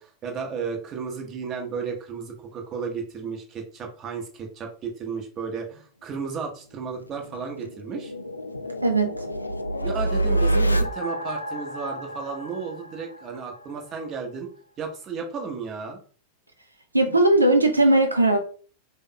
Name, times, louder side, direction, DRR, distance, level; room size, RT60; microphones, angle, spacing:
voice 1, 0.0-8.1 9.8-14.5 14.8-16.0, right 5 dB, 30° right, 2 dB, 0.9 m, -33 dB
sound 1, 6.8-13.6, right 1 dB, 85° left, 0.3 m, -28 dB
voice 2, 8.8-9.3 16.9-18.4, right 2 dB, 80° right, 5 dB, 0.4 m, -19 dB
3.5 x 2.2 x 3.8 m, 0.42 s
figure-of-eight pair, 90°, 0 cm